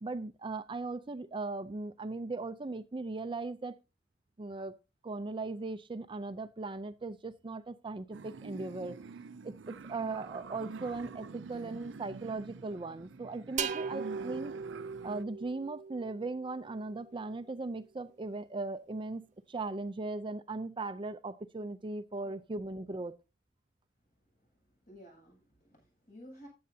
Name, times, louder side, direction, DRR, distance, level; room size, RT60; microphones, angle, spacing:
voice 1, 0.0-3.7 4.4-4.7 5.0-9.0 9.4-14.5 15.0-23.2, right 3 dB, 30° right, 0.5 m, -38 dB
sound 1, 8.1-15.2, right 4 dB, 85° right, 0.5 m, -47 dB
sound 2, 13.6-17.2, right 6 dB, 45° right, 0.9 m, -39 dB
voice 2, 24.4-26.5, equal, 50° left, 7.9 m, -54 dB
14.5 x 9.5 x 2.8 m
head